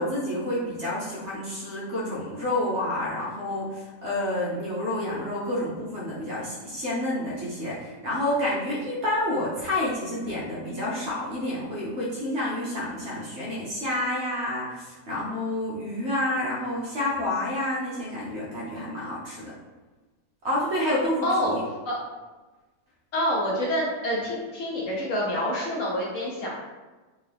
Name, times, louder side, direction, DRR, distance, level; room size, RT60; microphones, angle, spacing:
voice 1, 0.0-19.5 20.4-21.6, left 1 dB, 50° right, -6 dB, 1.0 m, -29 dB
voice 2, 21.2-21.6 21.8-22.0 23.1-26.5, equal, 60° left, -4 dB, 0.9 m, -27 dB
3.9 x 2.8 x 3.3 m, 1.2 s
omnidirectional pair, 1.8 m